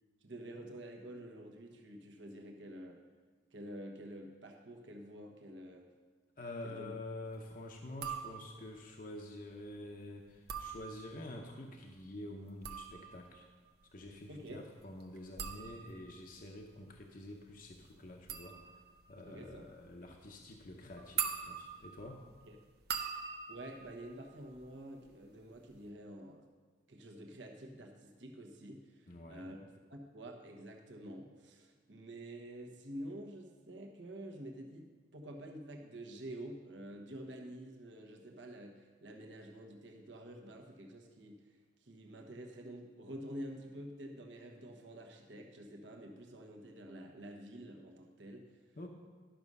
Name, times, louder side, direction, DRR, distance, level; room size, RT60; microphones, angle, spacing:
voice 1, 0.2-3.0 3.5-5.9 6.6-6.9 14.3-14.6 19.2-19.7 22.4-22.6 23.5-26.5 26.9-48.4, right 1 dB, 75° right, 2 dB, 1.2 m, -48 dB
voice 2, 6.4-13.5 13.9-18.6 19.1-22.2 29.1-29.5 48.8-48.9, left 1 dB, 45° left, 1 dB, 0.8 m, -48 dB
sound 1, 7.9-8.8 10.3-11.4 12.4-25.1 25.4-25.9, right 7 dB, 55° right, 0.7 m, -44 dB
11.5 x 6.2 x 5.4 m, 1.4 s
head